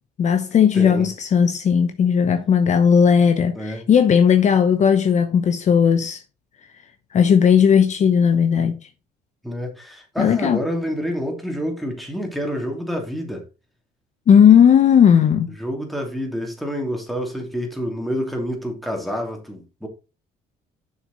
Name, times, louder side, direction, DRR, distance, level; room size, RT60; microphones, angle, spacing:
voice 1, 0.2-6.2 7.1-8.8 10.2-10.6 14.3-15.5, left 7 dB, 45° left, 0.9 m, -16 dB
voice 2, 0.7-1.1 3.6-3.8 9.4-13.4 15.6-19.9, equal, ahead, 2.8 m, -28 dB
7.2 x 6.5 x 4.0 m
cardioid pair, 110°, 17 cm